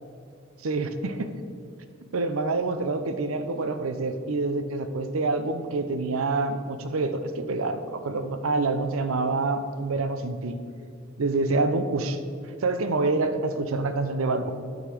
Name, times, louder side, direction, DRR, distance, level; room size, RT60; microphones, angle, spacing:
voice 1, 0.6-1.3 2.1-10.6 11.2-12.2 12.6-14.5, right 3 dB, 80° right, 9 dB, 0.6 m, -27 dB
11.5 x 3.9 x 6.0 m, 2.3 s
head